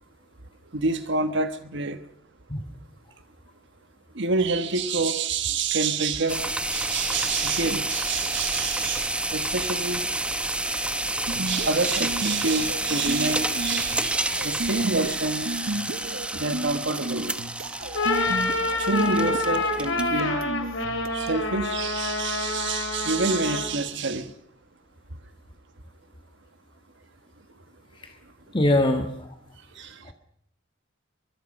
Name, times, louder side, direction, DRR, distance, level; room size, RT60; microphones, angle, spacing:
voice 1, 0.7-2.0 4.1-6.4 6.7-10.0 11.3-15.5 16.3-17.3 18.8-20.4 21.1-24.3 29.8-29.9, right 4 dB, 65° right, 9 dB, 1.3 m, -27 dB
sound 1, 6.3-20.2, right 2 dB, 5° right, 1.0 m, -29 dB
sound 2, 11.3-21.5, right 2 dB, 85° right, 1.2 m, -34 dB
sound 3, 17.8-23.8, left 3 dB, 75° left, 3.8 m, -27 dB
voice 2, 28.5-29.3 30.1-30.2, left 1 dB, 25° left, 5 dB, 1.5 m, -22 dB
23.5 x 23.5 x 5.4 m, 0.70 s
head